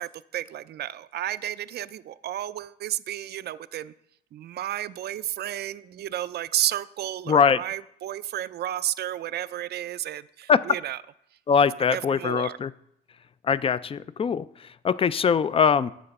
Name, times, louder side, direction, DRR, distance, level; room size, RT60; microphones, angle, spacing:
voice 1, 0.0-3.9 4.3-11.0 11.9-12.6, right 12 dB, 55° right, 15 dB, 0.4 m, -32 dB
voice 2, 7.3-7.6 10.5-10.6 11.5-12.7 13.4-15.9, left 6 dB, 30° left, 17 dB, 0.3 m, -22 dB
8.9 x 6.7 x 4.2 m, 0.75 s
cardioid pair, 90°, 20 cm